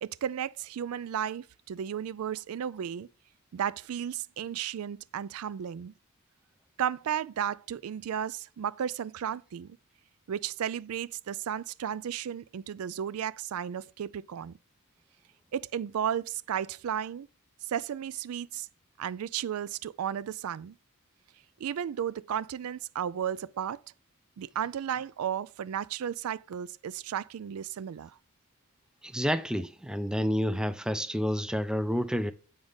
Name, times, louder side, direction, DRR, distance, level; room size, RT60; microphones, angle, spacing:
voice 1, 0.0-3.1 3.5-5.9 6.8-9.8 10.3-14.6 15.5-17.3 17.7-18.7 19.0-20.7 21.6-23.8 24.4-28.2, right 9 dB, 80° right, 0.4 m, -34 dB
voice 2, 29.0-32.3, equal, 5° right, 0.4 m, -29 dB
7.9 x 5.2 x 3.4 m
head